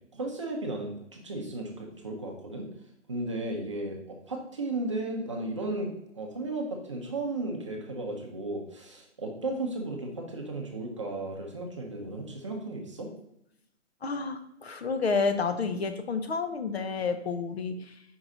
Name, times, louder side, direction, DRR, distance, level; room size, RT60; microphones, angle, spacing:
voice 1, 0.1-2.7 3.1-13.1, right 2 dB, 25° right, 0 dB, 0.7 m, -35 dB
voice 2, 14.0-18.0, left 4 dB, 60° left, 9 dB, 0.7 m, -30 dB
5.4 x 4.6 x 3.7 m, 0.79 s
hypercardioid pair, 165°, 36 cm